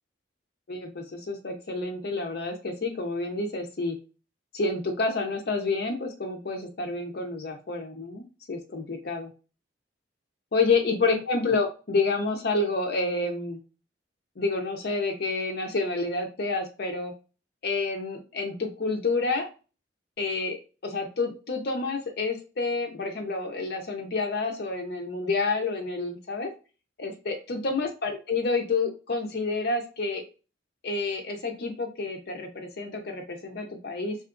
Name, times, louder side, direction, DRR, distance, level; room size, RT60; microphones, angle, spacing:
voice 1, 0.7-4.0 4.5-9.3 10.5-13.6 14.4-17.1 17.6-19.5 20.2-20.6 20.8-26.5 27.0-30.2 30.8-34.2, left 3 dB, 55° left, 2 dB, 0.6 m, -29 dB
2.7 x 2.4 x 2.4 m, 0.32 s
head